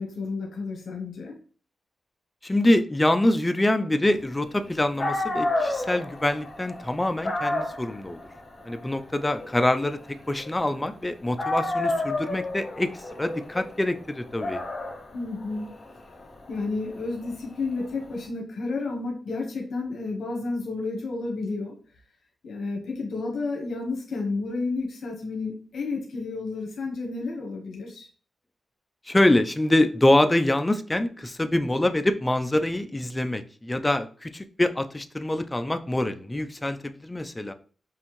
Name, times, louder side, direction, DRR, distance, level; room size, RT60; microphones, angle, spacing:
voice 1, 0.0-1.3 15.1-15.7 16.5-21.8 22.4-28.1, left 3 dB, 80° left, 1 dB, 0.9 m, -31 dB
voice 2, 2.4-8.2 8.6-10.0 10.3-12.9 13.2-14.6 29.1-37.5, left 1 dB, 15° left, 9 dB, 0.3 m, -25 dB
Dog, 4.7-4.8 5.0-11.0 11.4-18.2, left 2 dB, 30° left, 0.8 m, -31 dB
5.4 x 2.6 x 3.0 m, 0.41 s
wide cardioid pair, 150°, 0 cm